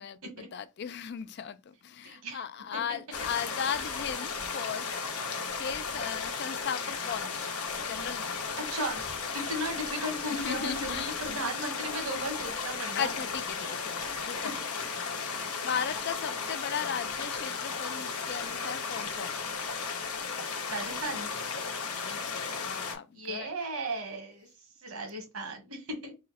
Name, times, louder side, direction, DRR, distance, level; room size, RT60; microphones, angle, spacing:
voice 1, 0.5-5.0 5.6-7.5 7.8-8.5 10.3-11.1 12.9-14.9 15.4-19.4 21.9-23.5, left 7 dB, 50° left, 0.3 m, -37 dB
voice 2, 2.0-2.4 2.7-3.0 8.6-9.0 9.3-13.1 14.4-14.5 20.7-21.3 23.1-24.5 24.8-26.1, right 1 dB, 80° right, 1.3 m, -36 dB
sound 1, 3.1-23.0, left 5 dB, 90° left, 1.0 m, -35 dB
3.8 x 2.0 x 4.0 m
head